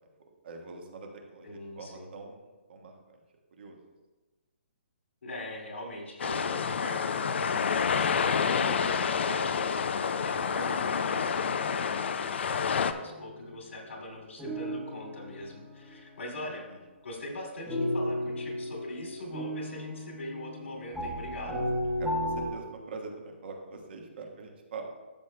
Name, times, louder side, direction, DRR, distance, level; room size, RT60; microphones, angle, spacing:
voice 1, 0.4-3.2 3.5-3.8 16.4-16.8 21.7-24.9, right 4 dB, 55° right, 2 dB, 1.4 m, -44 dB
voice 2, 1.4-2.1 5.2-9.8 10.2-16.7 17.0-21.6, left 1 dB, 85° left, 0 dB, 2.5 m, -42 dB
sound 1, 6.2-12.9, left 6 dB, 65° left, 0.4 m, -28 dB
sound 2, 13.1-13.5 14.4-16.4 17.7-22.5, equal, 5° right, 1.0 m, -34 dB
12.5 x 6.6 x 2.2 m, 1.2 s
hypercardioid pair, 160°, 7 cm